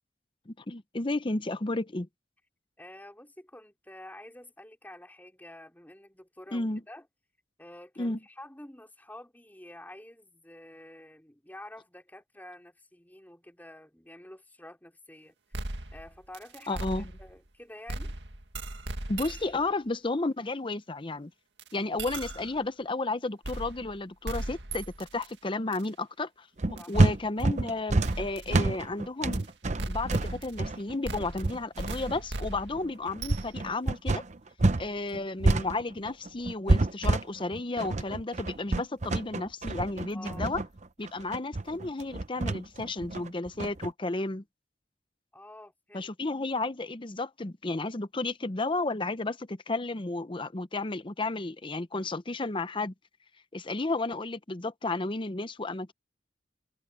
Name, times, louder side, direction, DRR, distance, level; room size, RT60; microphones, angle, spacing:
voice 1, 0.5-2.1 6.5-6.8 8.0-8.2 16.7-17.0 19.1-21.3 21.7-29.5 29.9-34.2 34.8-40.6 41.0-44.4 45.9-52.9 53.5-55.9, left 2 dB, 30° left, 0.8 m, -33 dB
voice 2, 2.8-7.1 7.6-15.4 15.9-16.9 17.2-18.1 26.8-26.9 40.1-40.5 45.3-46.1, left 1 dB, 10° left, 4.4 m, -49 dB
sound 1, 15.5-17.5 17.9-19.6 21.6-21.7 22.0-22.6 23.4-24.0 24.2-25.3 25.7-25.8 26.8-26.9 28.0-28.6 29.3-29.4 29.8-30.7 31.0-33.7, right 2 dB, 80° right, 2.0 m, -38 dB
sound 2, 26.6-34.9 35.1-43.9, right 2 dB, 40° right, 0.8 m, -28 dB
head